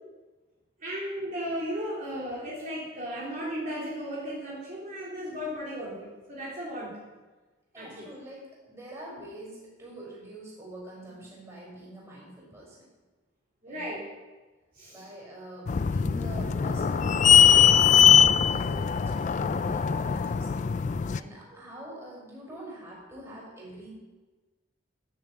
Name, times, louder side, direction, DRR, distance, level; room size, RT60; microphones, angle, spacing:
voice 1, 0.8-7.0 7.7-8.0 13.6-14.0 14.7-15.1, equal, 40° right, -8 dB, 3.3 m, -35 dB
voice 2, 7.7-12.9 13.7-13.9 14.9-20.6 21.1-23.9, right 1 dB, 15° right, -5 dB, 5.4 m, -45 dB
sound 1, 15.7-21.2, left 8 dB, 35° left, 0.3 m, -21 dB
13.0 x 7.1 x 7.6 m, 1.2 s
head